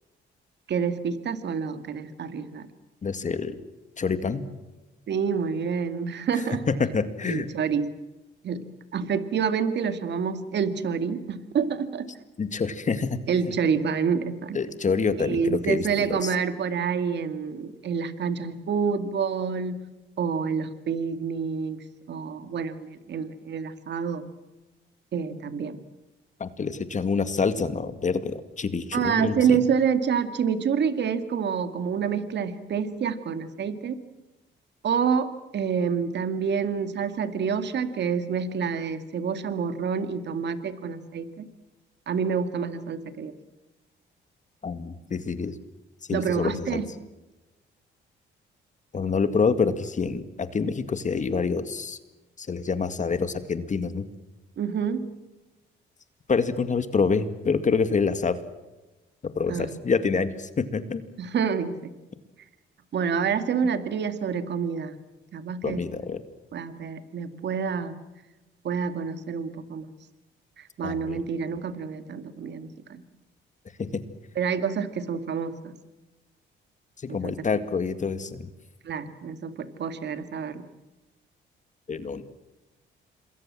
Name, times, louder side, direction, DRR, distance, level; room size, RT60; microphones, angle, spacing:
voice 1, 0.7-2.7 5.1-6.6 7.3-7.9 8.4-12.1 13.3-14.6 15.2-19.8 20.2-21.8 22.1-24.2 25.1-25.8 28.9-34.0 34.8-41.5 42.1-43.3 46.1-46.9 54.6-55.1 59.5-59.7 61.2-61.9 62.9-65.0 65.3-65.8 66.5-68.0 68.6-69.9 70.6-73.0 74.4-75.7 77.1-77.3 78.8-80.7, right 6 dB, 60° right, 10 dB, 2.2 m, -28 dB
voice 2, 3.0-3.6 4.0-4.4 6.7-7.5 12.4-13.2 13.4-13.5 14.5-16.3 26.4-29.6 44.6-45.6 46.1-46.8 48.9-52.0 52.4-54.1 56.3-58.4 59.3-61.0 65.6-66.2 70.8-71.2 73.8-74.0 77.0-78.5 81.9-82.2, left 5 dB, 40° left, 11 dB, 2.1 m, -27 dB
27.0 x 21.5 x 7.6 m, 1.1 s
cardioid pair, 90°, 20 cm